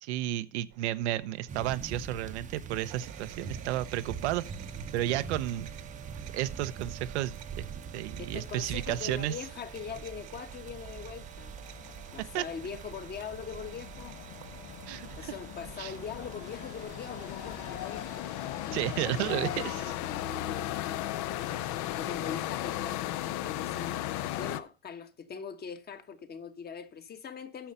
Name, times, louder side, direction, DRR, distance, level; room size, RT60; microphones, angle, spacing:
voice 1, 0.0-4.4 4.9-5.7 6.3-9.4 12.3-12.4 14.9-15.3 15.8-15.9 18.7-19.9, right 14 dB, 70° right, 0.8 m, -32 dB
sound 1, 0.7-19.7, right 14 dB, 55° right, 1.2 m, -51 dB
sound 2, 1.5-18.2, right 6 dB, 20° right, 0.9 m, -44 dB
voice 2, 8.2-11.5 12.1-14.2 15.1-18.0 18.6-21.1 21.6-27.7, left 6 dB, 25° left, 1.3 m, -42 dB
sound 3, 10.4-10.5 10.7-24.6, left 14 dB, 50° left, 0.8 m, -37 dB
10.0 x 6.5 x 5.5 m
hypercardioid pair, 105°, 35 cm